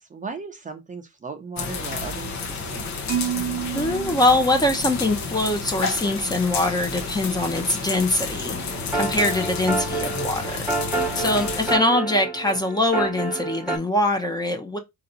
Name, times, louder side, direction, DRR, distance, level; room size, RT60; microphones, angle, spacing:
voice 1, 0.0-2.9, right 4 dB, 25° right, 0.6 m, -37 dB
sound 1, 1.6-11.8, left 4 dB, 70° left, 1.0 m, -30 dB
Marimba xylophone, 3.1-5.3, right 10 dB, 60° right, 0.7 m, -30 dB
voice 2, 3.7-14.8, left 1 dB, 15° left, 0.8 m, -23 dB
sound 2, 8.7-13.8, right 3 dB, 5° right, 1.2 m, -28 dB
4.5 x 2.8 x 3.8 m
cardioid pair, 145°, 30 cm